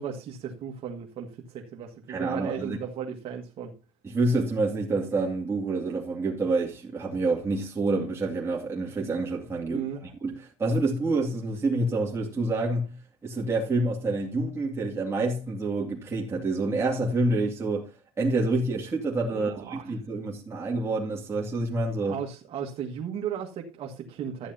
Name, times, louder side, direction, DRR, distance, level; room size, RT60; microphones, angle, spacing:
voice 1, 0.0-3.7 9.7-10.0 19.3-19.9 22.0-24.5, right 8 dB, 55° right, 1.7 m, -36 dB
voice 2, 2.1-2.8 4.0-9.8 10.2-12.9 13.2-17.9 18.2-22.2, right 2 dB, 25° right, 2.3 m, -27 dB
13.5 x 10.0 x 2.8 m
cardioid pair, 115°, 11 cm